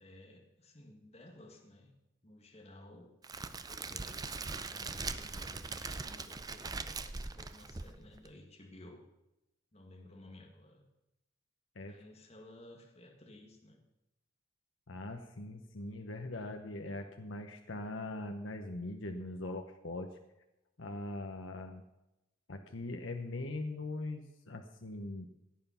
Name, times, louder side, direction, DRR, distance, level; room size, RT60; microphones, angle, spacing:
voice 1, 0.0-1.9 2.2-3.1 3.7-9.0 9.7-10.8 11.8-13.8, left 1 dB, 30° left, 2 dB, 1.8 m, -55 dB
Crackle, 3.2-8.3, right 4 dB, 20° right, 0.5 m, -41 dB
voice 2, 14.9-20.1 20.8-21.8 22.5-25.3, left 2 dB, 70° left, 5 dB, 1.0 m, -41 dB
16.5 x 9.4 x 5.7 m, 0.93 s
head